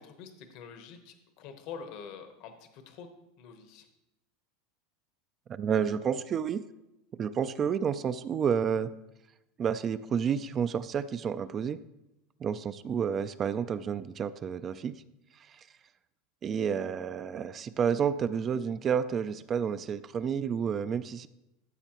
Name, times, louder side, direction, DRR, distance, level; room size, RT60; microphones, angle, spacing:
voice 1, 0.0-3.1 3.4-3.9, left 6 dB, 55° left, 7 dB, 0.9 m, -46 dB
voice 2, 5.5-6.6 7.2-8.9 9.6-11.8 12.4-15.0 16.4-21.3, right 7 dB, 30° right, 13 dB, 0.3 m, -30 dB
13.0 x 6.8 x 3.0 m, 0.93 s
supercardioid pair, 135°, 0 cm